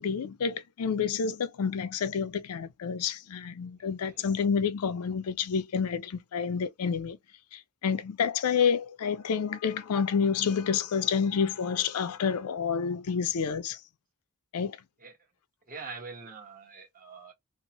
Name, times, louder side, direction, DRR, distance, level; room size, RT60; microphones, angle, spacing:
voice 1, 0.0-7.2 7.5-13.8 14.5-14.8, left 6 dB, 80° left, 0.4 m, -29 dB
voice 2, 15.7-17.3, right 4 dB, 40° right, 1.2 m, -44 dB
2.6 x 2.1 x 2.9 m
head